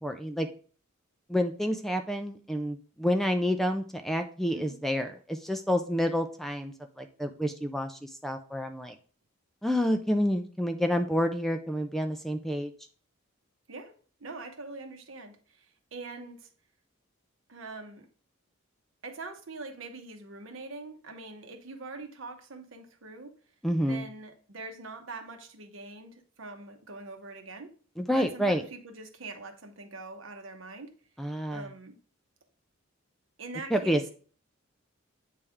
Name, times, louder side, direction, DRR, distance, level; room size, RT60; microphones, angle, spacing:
voice 1, 0.0-0.5 1.3-9.0 9.6-12.7 23.6-24.0 28.0-28.6 31.2-31.7 33.7-34.1, equal, ahead, 6 dB, 0.3 m, -29 dB
voice 2, 14.2-16.5 17.5-18.1 19.0-23.3 23.8-27.7 28.1-30.9 31.5-32.0 33.4-34.1, right 3 dB, 70° right, 6 dB, 1.0 m, -43 dB
8.4 x 3.3 x 3.4 m, 0.42 s
head